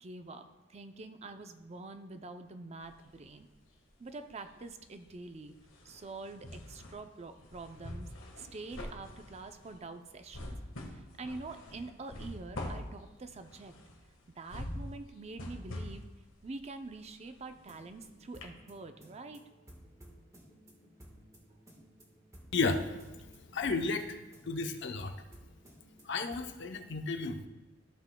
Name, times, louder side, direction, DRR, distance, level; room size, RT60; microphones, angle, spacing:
voice 1, 0.0-3.5 4.0-5.6 5.8-10.6 10.9-13.8 14.4-16.0 16.4-19.4 21.8-21.9, right 3 dB, 35° right, 8 dB, 0.5 m, -46 dB
sound 1, 2.8-3.9 4.2-18.0 18.4-18.5, left 1 dB, 85° left, 1.5 m, -45 dB
sound 2, 17.5-26.6, equal, 15° right, 1.4 m, -56 dB
voice 2, 22.5-23.1 23.5-24.1 24.5-25.1 26.0-27.5, left 3 dB, 60° left, 6 dB, 0.7 m, -33 dB
15.0 x 6.0 x 2.2 m, 1.1 s
head